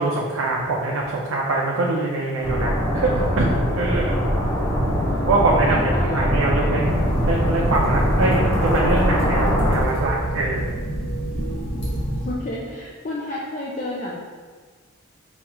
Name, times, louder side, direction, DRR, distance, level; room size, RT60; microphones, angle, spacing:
voice 1, 0.0-3.5 3.8-4.2 5.3-5.8 6.0-10.7, right 2 dB, 85° right, -3 dB, 0.4 m, -23 dB
sound 1, 2.4-9.8, equal, 15° left, 0.9 m, -22 dB
voice 2, 5.0-6.8 12.1-14.2, left 1 dB, 40° left, -4 dB, 0.4 m, -32 dB
sound 2, 6.8-12.4, right 1 dB, 65° left, 1.3 m, -27 dB
4.7 x 2.3 x 2.9 m, 1.5 s
head